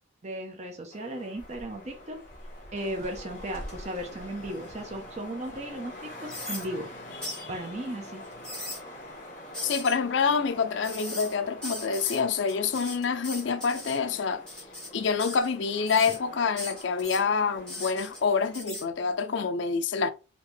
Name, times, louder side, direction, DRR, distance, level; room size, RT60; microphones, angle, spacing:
voice 1, 0.2-2.2 2.7-6.9 7.5-8.2, right 1 dB, 35° right, 0.7 m, -36 dB
sound 1, 0.9-18.6, left 1 dB, 45° left, 2.4 m, -46 dB
sound 2, 1.4-1.9 2.3-4.9 5.4-5.5 6.3-6.6 7.2-7.4 8.2-8.8 9.5-9.9 10.8-11.3 11.6-12.2 12.5-14.0 14.5-14.9 15.2-15.5 15.8-16.2 16.6-17.2 17.7-18.2 18.5-18.8, left 1 dB, 5° left, 2.0 m, -39 dB
voice 2, 9.6-14.4 14.9-20.1, left 5 dB, 65° left, 0.5 m, -27 dB
5.1 x 2.8 x 3.2 m
head